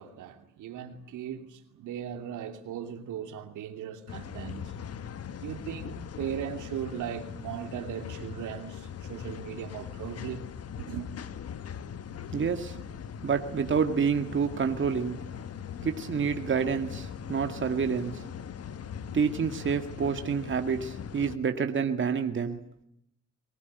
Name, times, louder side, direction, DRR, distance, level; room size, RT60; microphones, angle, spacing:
voice 1, 0.0-4.8 5.4-10.5 10.8-11.1, right 9 dB, 80° right, 3.0 m, -38 dB
sound 1, 4.1-21.4, left 8 dB, 55° left, 1.4 m, -40 dB
voice 2, 12.3-12.8 13.2-15.2 15.8-18.2 19.1-22.6, right 6 dB, 40° right, 2.2 m, -28 dB
23.0 x 19.5 x 9.6 m
cardioid pair, 90°, 30 cm